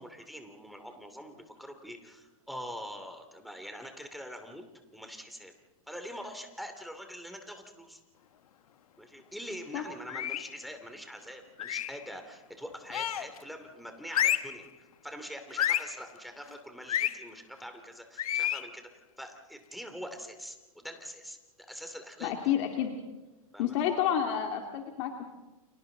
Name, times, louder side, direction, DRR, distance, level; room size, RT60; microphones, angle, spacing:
voice 1, 0.0-4.6 4.9-5.5 5.9-8.0 9.0-14.7 15.0-18.9 19.2-21.4 21.7-22.3 23.5-23.8, equal, ahead, 5 dB, 2.7 m, -44 dB
sound 1, 10.1-10.6 11.6-12.0 12.9-13.4 14.1-14.6 15.6-16.0 16.9-17.2 18.2-18.7, left 11 dB, 75° left, 1.2 m, -30 dB
voice 2, 22.2-22.9 23.6-25.2, left 9 dB, 55° left, 2 dB, 2.5 m, -29 dB
30.0 x 27.0 x 4.0 m, 1.1 s
hypercardioid pair, 135°, 19 cm